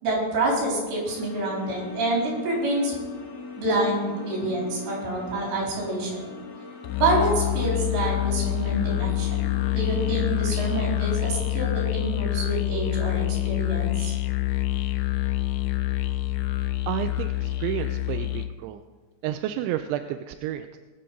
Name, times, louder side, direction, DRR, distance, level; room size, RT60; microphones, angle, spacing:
voice 1, 0.0-2.9 3.6-6.1 7.0-9.5 9.7-14.1, right 2 dB, 70° right, -4 dB, 6.2 m, -27 dB
sound 1, 1.0-11.1, left 4 dB, 40° left, 1.5 m, -40 dB
Musical instrument, 6.8-18.6, left 14 dB, 85° left, 2.9 m, -26 dB
voice 2, 16.9-18.8 19.2-20.8, right 12 dB, 90° right, 8 dB, 2.9 m, -31 dB
21.5 x 7.8 x 3.9 m, 1.3 s
omnidirectional pair, 5.2 m